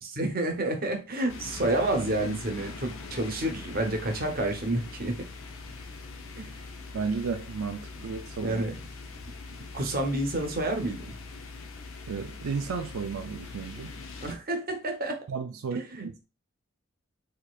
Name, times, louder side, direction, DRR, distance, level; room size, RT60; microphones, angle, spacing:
voice 1, 0.0-5.1 6.4-6.5 8.4-8.7 9.7-11.1 14.2-15.2 15.7-16.1, right 1 dB, 45° right, 0.8 m, -29 dB
sound 1, 1.3-14.3, left 3 dB, 70° left, 0.7 m, -42 dB
voice 2, 6.9-8.6 12.1-13.9 15.3-16.3, right 5 dB, 85° right, 0.4 m, -33 dB
4.3 x 2.8 x 2.3 m
head